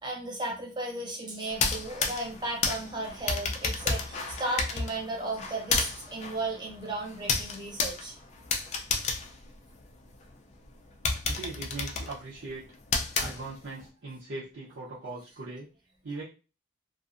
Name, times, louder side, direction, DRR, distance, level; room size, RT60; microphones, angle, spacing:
voice 1, 0.0-8.1, right 2 dB, 25° right, -1 dB, 0.7 m, -35 dB
sound 1, 1.5-10.2 10.6-10.7 11.0-13.8, left 4 dB, 35° left, 0.3 m, -32 dB
voice 2, 11.3-12.6 13.2-15.7 16.0-16.2, right 3 dB, 75° right, -8 dB, 0.6 m, -40 dB
2.5 x 2.4 x 2.4 m, 0.34 s
head